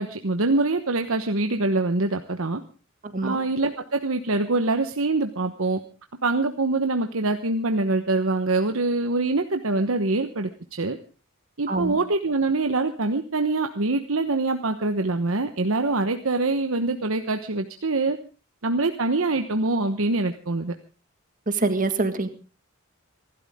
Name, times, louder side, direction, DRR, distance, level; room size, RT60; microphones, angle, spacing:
voice 1, 0.0-2.6 3.2-5.8 6.2-11.0 11.6-18.2 18.6-20.7, right 2 dB, 70° right, 6 dB, 1.1 m, -24 dB
voice 2, 21.6-22.3, right 2 dB, 40° right, 9 dB, 1.8 m, -24 dB
26.0 x 12.5 x 3.6 m, 0.34 s
head